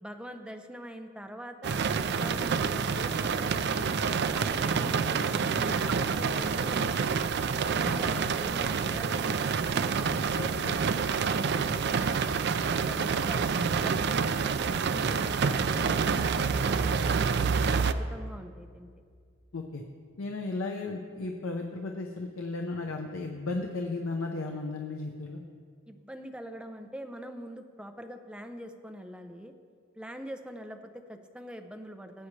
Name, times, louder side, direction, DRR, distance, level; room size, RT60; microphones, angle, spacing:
voice 1, 0.0-3.9 4.3-5.2 5.5-6.9 7.6-9.5 9.7-9.8 14.6-17.3 17.8-18.9 25.9-29.5 30.0-32.3, equal, 5° right, 5 dB, 0.6 m, -44 dB
sound 1, 1.6-17.9, right 5 dB, 50° right, 0.4 m, -28 dB
voice 2, 7.8-8.2 10.4-10.8 19.5-19.8 20.2-25.4, left 3 dB, 75° left, 2 dB, 0.8 m, -35 dB
18.0 x 8.5 x 3.3 m, 2.2 s
head